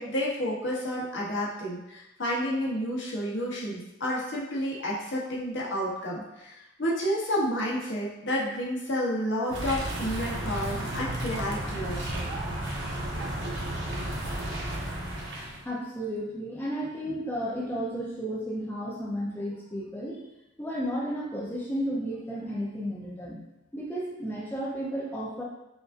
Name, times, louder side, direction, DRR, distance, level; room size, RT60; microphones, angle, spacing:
voice 1, 0.0-12.3, equal, 65° left, -5 dB, 0.9 m, -30 dB
sound 1, 9.5-15.6, right 1 dB, 65° right, 0.8 m, -33 dB
voice 2, 15.6-20.2 20.6-23.4 23.7-25.4, equal, 10° left, -6 dB, 0.5 m, -33 dB
5.0 x 2.5 x 2.5 m, 0.93 s
head